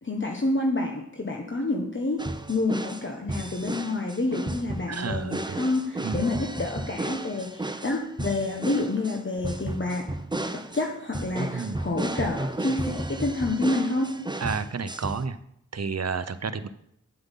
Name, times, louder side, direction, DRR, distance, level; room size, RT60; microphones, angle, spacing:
voice 1, 0.0-10.0 10.5-14.1, left 2 dB, 35° left, 1 dB, 1.3 m, -28 dB
sound 1, 2.2-15.2, right 2 dB, 15° right, 0.8 m, -33 dB
voice 2, 4.9-5.7 6.0-6.3 11.5-11.8 14.4-15.4 15.7-16.7, right 5 dB, 50° right, 13 dB, 0.8 m, -31 dB
9.6 x 7.8 x 5.5 m, 0.73 s
wide cardioid pair, 60°, 32 cm